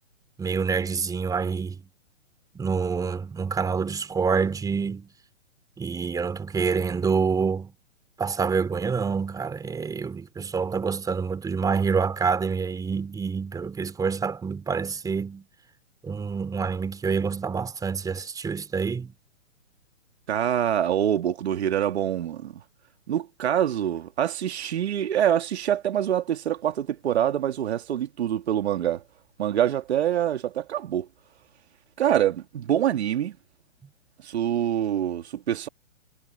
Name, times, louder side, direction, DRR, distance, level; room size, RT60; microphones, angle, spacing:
voice 1, 0.4-1.8 2.5-5.1 5.8-7.7 8.2-15.5 16.0-19.1, right 5 dB, 10° right, 3.7 m, -27 dB
voice 2, 20.3-22.5 23.1-29.0 29.4-31.1 32.0-33.4 34.2-35.7, right 10 dB, 60° right, 2.4 m, -25 dB
hypercardioid pair, 130°, 37 cm